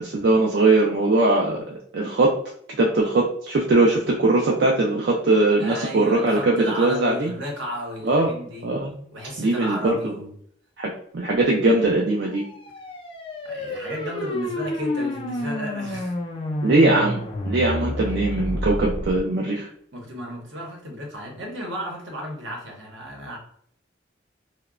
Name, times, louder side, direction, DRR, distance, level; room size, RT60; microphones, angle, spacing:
voice 1, 0.0-2.3 2.8-7.3 8.0-8.3 8.6-9.0 9.4-10.1 10.8-12.4 16.6-19.7, right 2 dB, 60° right, -2 dB, 0.4 m, -20 dB
voice 2, 5.6-8.7 9.1-10.3 13.4-16.2 19.9-23.4, equal, 80° right, 0 dB, 0.9 m, -33 dB
sound 1, 12.3-19.2, left 1 dB, 30° left, 0.4 m, -30 dB
2.8 x 2.1 x 2.4 m, 0.64 s
head